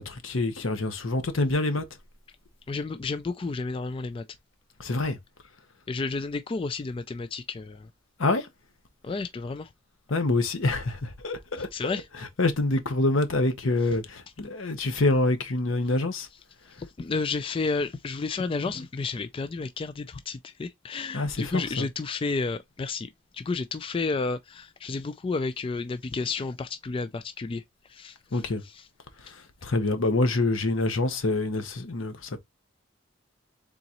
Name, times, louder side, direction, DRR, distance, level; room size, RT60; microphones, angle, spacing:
voice 1, 0.0-1.8 4.8-5.2 8.2-8.5 10.1-12.0 12.4-16.3 21.1-21.9 28.3-28.6 29.2-32.4, left 2 dB, 80° left, 1.0 m, -26 dB
voice 2, 2.7-4.2 5.9-7.9 9.0-9.7 11.7-12.1 16.8-27.6 27.9-28.8, left 4 dB, 25° left, 0.3 m, -31 dB
3.9 x 3.7 x 2.9 m
head